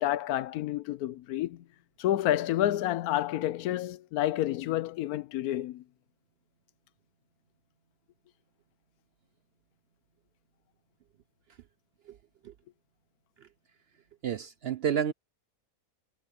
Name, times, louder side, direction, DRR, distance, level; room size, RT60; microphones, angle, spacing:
voice 1, 0.0-1.6 2.0-5.8, left 13 dB, 75° left, 1.0 m, -29 dB
voice 2, 14.2-15.1, right 8 dB, 70° right, 0.6 m, -30 dB
omnidirectional pair, 1.7 m